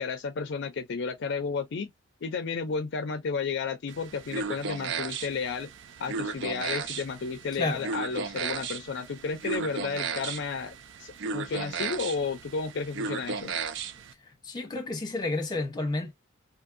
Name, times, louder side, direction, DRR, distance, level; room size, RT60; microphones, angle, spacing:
voice 1, 0.0-1.9 2.2-5.7 6.0-13.6, left 5 dB, 60° left, 0.4 m, -32 dB
sound 1, 3.9-14.1, right 5 dB, 65° right, 0.4 m, -35 dB
voice 2, 14.4-16.1, left 2 dB, 20° left, 0.9 m, -30 dB
2.6 x 2.6 x 2.5 m
head